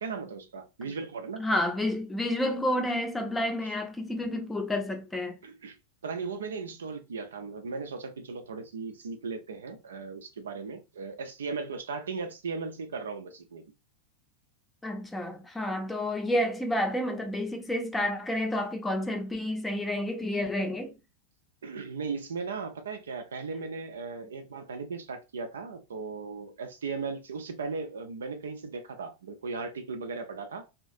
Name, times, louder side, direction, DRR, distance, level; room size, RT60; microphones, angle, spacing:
voice 1, 0.0-1.5 5.4-5.8 6.0-13.6 21.6-30.7, right 4 dB, 65° right, 0.4 m, -37 dB
voice 2, 1.4-5.4 14.8-21.0, left 1 dB, 10° left, 0.6 m, -30 dB
2.7 x 2.3 x 2.5 m
figure-of-eight pair, 90°, 0 cm